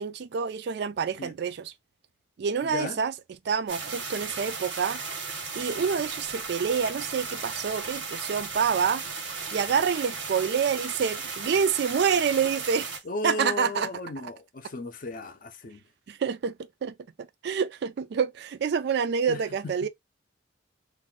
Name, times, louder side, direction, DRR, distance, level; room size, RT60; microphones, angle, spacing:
voice 1, 0.0-1.7 2.4-3.1 3.5-5.0 5.5-9.0 9.5-13.0 13.2-13.9 14.2-14.3 16.1-16.9 17.4-19.9, right 6 dB, 60° right, 0.3 m, -27 dB
voice 2, 2.6-3.0 13.1-15.8 19.3-19.4, left 2 dB, 45° left, 0.5 m, -35 dB
sound 1, 3.7-13.0, right 4 dB, 90° right, 1.2 m, -35 dB
2.5 x 2.2 x 3.6 m
head